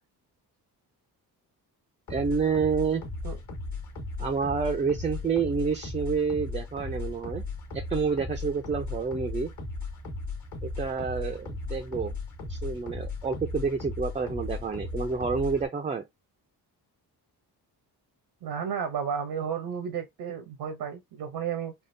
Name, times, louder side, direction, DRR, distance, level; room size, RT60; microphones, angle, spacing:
sound 1, 2.1-15.7, left 3 dB, 45° left, 1.2 m, -36 dB
voice 1, 2.1-3.0 4.2-7.4 7.7-9.5 10.6-12.1 12.5-16.0, right 5 dB, 20° right, 0.4 m, -28 dB
voice 2, 18.4-21.7, right 7 dB, 75° right, 0.8 m, -32 dB
3.5 x 2.3 x 2.6 m
cardioid pair, 85°, 39 cm